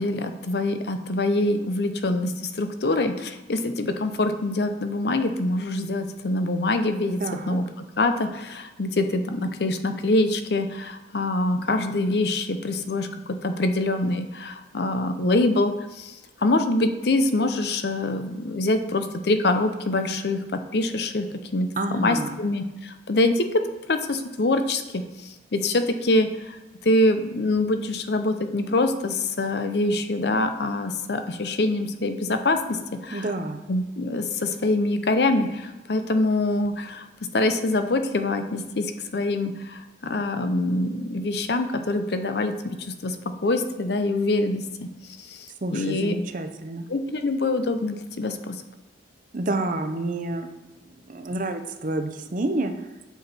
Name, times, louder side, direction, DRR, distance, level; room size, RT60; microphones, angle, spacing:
voice 1, 0.0-7.6 8.0-21.3 21.5-26.6 26.8-33.3 33.7-37.1 37.3-42.8 43.0-43.2 43.4-44.6 45.2-46.1 46.9-48.5, left 2 dB, 60° left, 8 dB, 0.7 m, -25 dB
voice 2, 7.2-7.6 21.8-22.4 33.1-33.6 45.6-46.8 49.3-50.5 51.1-52.7, right 2 dB, 45° right, 7 dB, 0.7 m, -28 dB
8.1 x 6.1 x 4.2 m, 1.1 s
head